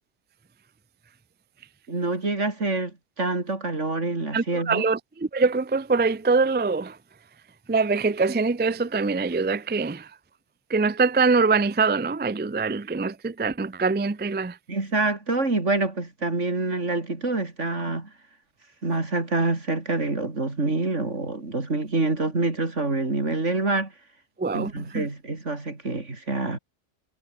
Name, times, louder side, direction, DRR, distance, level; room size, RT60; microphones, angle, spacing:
voice 1, 1.9-4.8 14.7-18.1 18.8-23.9 24.5-26.6, right 2 dB, 70° right, 4.2 m, -26 dB
voice 2, 4.3-7.0 7.7-10.1 10.7-14.6 24.4-25.1, right 4 dB, 15° right, 0.3 m, -24 dB
omnidirectional pair, 1.3 m